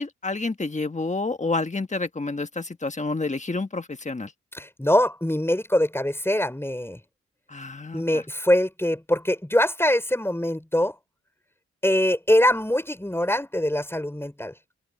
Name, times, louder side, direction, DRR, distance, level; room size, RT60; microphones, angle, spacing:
voice 1, 0.0-4.3 7.5-8.2, left 3 dB, 25° left, 1.4 m, -29 dB
voice 2, 4.5-7.0 7.9-11.0 11.8-14.5, left 1 dB, 10° left, 5.4 m, -23 dB
open air
wide cardioid pair, 105°, 30 cm